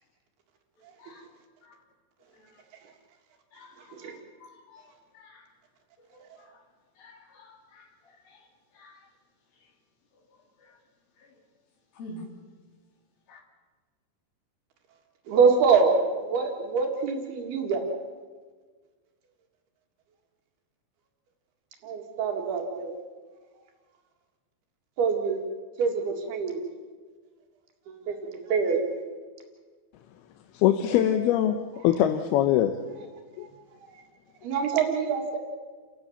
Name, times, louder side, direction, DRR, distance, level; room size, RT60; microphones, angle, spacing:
voice 1, 3.5-4.9 5.1-5.5 6.1-6.5 7.0-8.5 8.8-9.1 10.6-10.8 11.2-11.3 12.0-12.2 13.3-13.4, left 1 dB, 70° left, 1 dB, 5.1 m, -49 dB
voice 2, 15.3-17.8 21.8-22.9 25.0-25.4 25.8-26.7 28.1-28.2 28.5-29.0 33.4-33.5 34.4-35.4, right 5 dB, 80° right, 2 dB, 4.0 m, -25 dB
voice 3, 30.5-32.8 33.4-33.5, left 11 dB, 90° left, 6 dB, 2.9 m, -23 dB
29.5 x 16.5 x 7.1 m, 1.5 s
omnidirectional pair, 4.4 m